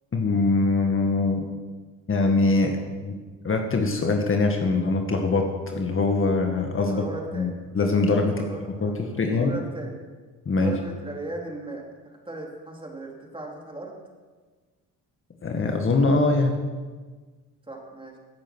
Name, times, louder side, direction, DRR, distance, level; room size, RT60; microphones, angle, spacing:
voice 1, 0.1-1.5 2.1-3.1 3.4-7.0 7.3-8.4 8.8-9.5 10.4-10.7 15.4-16.6, left 3 dB, 40° left, 3 dB, 1.9 m, -23 dB
voice 2, 6.8-7.5 8.3-10.0 10.6-14.0 17.7-18.1, right 2 dB, 15° right, -1 dB, 3.9 m, -38 dB
17.0 x 9.2 x 6.3 m, 1.4 s
cardioid pair, 80°, 34 cm